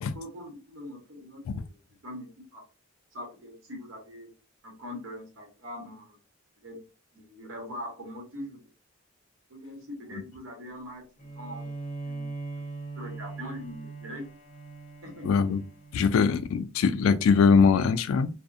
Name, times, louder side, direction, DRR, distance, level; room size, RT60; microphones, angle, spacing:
voice 1, 0.1-2.6 3.1-4.3 4.6-6.2 6.6-6.8 7.1-8.6 9.5-11.0 11.3-11.7 12.0-12.7 12.9-14.3 15.0-15.5, left 1 dB, 75° right, 1.0 m, -42 dB
Bowed string instrument, 11.2-16.7, right 3 dB, 35° left, 0.6 m, -41 dB
voice 2, 15.2-15.6 15.9-18.3, left 5 dB, 90° left, 0.3 m, -22 dB
2.5 x 2.0 x 2.4 m
head